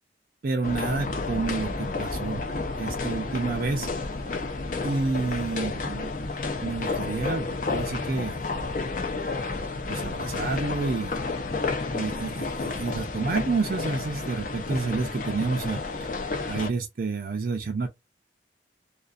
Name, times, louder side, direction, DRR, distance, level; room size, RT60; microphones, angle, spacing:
voice 1, 0.4-2.4 2.8-3.9 4.8-6.1 6.6-8.4 9.9-11.2 11.9-15.8 16.5-17.9, right 3 dB, 55° right, 0.5 m, -29 dB
sound 1, 0.6-16.7, left 3 dB, 50° left, 0.6 m, -31 dB
2.5 x 2.4 x 2.3 m
head